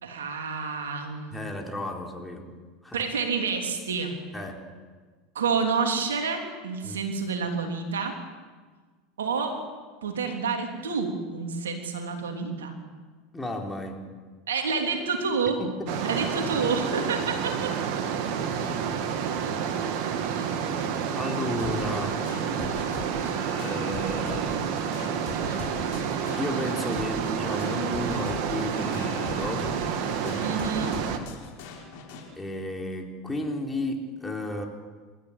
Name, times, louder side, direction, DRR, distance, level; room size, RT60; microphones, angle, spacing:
voice 1, 0.0-1.5 2.9-4.1 5.3-8.2 9.2-9.6 10.0-12.7 14.5-15.6 16.0-17.7 30.4-31.0, right 5 dB, 75° right, 4 dB, 3.3 m, -29 dB
voice 2, 1.3-2.5 2.8-3.0 4.3-4.6 6.8-7.0 13.3-14.1 15.6-16.0 21.1-22.2 23.6-24.7 26.4-29.7 30.2-30.6 32.4-34.7, left 1 dB, 10° left, 1 dB, 4.0 m, -33 dB
sound 1, 15.9-31.2, right 7 dB, 55° right, 2.3 m, -29 dB
sound 2, 21.6-32.2, left 5 dB, 60° left, 5.5 m, -42 dB
28.5 x 13.5 x 8.9 m, 1.5 s
figure-of-eight pair, 80°, 0 cm